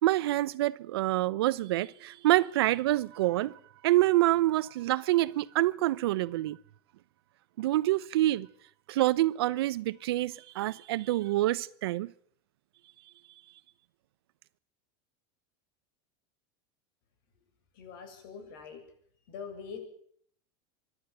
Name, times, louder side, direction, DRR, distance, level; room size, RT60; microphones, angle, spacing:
voice 1, 0.0-6.6 7.6-8.5 8.9-12.1, right 16 dB, 85° right, 0.9 m, -27 dB
voice 2, 17.7-18.8 19.3-19.8, left 6 dB, 70° left, 7.7 m, -43 dB
24.5 x 12.0 x 9.2 m
supercardioid pair, 150°, 13 cm